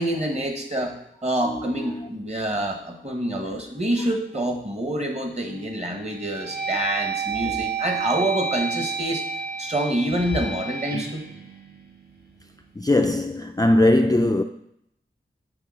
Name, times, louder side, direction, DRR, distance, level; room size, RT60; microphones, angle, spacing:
voice 1, 0.0-9.2 9.6-11.2, right 1 dB, 30° right, 1.5 m, -27 dB
voice 2, 1.4-2.1 7.3-7.7 12.8-14.4, left 1 dB, 15° left, 0.4 m, -21 dB
sound 1, 5.2-5.6 6.1-12.3, right 5 dB, 50° right, 1.3 m, -30 dB
6.8 x 3.7 x 6.4 m
wide cardioid pair, 50°, 21 cm